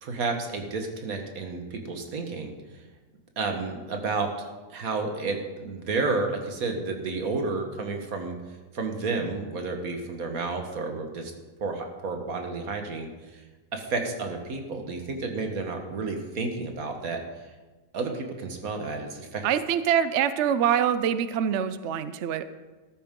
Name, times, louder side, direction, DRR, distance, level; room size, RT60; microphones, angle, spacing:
voice 1, 0.0-2.5 3.4-8.4 8.7-11.3 11.6-13.4 13.7-17.2 17.9-19.4, right 3 dB, 55° right, 4 dB, 1.8 m, -31 dB
voice 2, 19.4-22.4, right 9 dB, 70° right, 12 dB, 0.6 m, -24 dB
13.5 x 13.5 x 3.7 m, 1.3 s
omnidirectional pair, 1.8 m